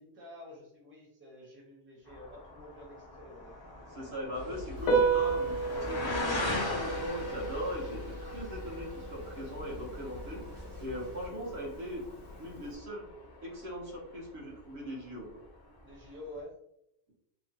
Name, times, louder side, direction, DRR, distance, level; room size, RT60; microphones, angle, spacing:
voice 1, 0.0-3.6 15.8-16.6, left 1 dB, 15° right, -3 dB, 0.6 m, -49 dB
sound 1, 2.1-14.5 14.8-15.4 15.9-16.0, left 2 dB, 35° left, 0.4 m, -41 dB
voice 2, 3.9-10.4 10.8-12.0 12.4-13.1 13.4-15.3, equal, 70° right, -3 dB, 1.2 m, -40 dB
sound 2, 4.3-11.3, left 3 dB, 90° right, 1.5 m, -46 dB
Piano, 4.8-12.7, right 4 dB, 70° left, 0.8 m, -34 dB
3.0 x 2.2 x 2.7 m, 0.78 s
omnidirectional pair, 1.1 m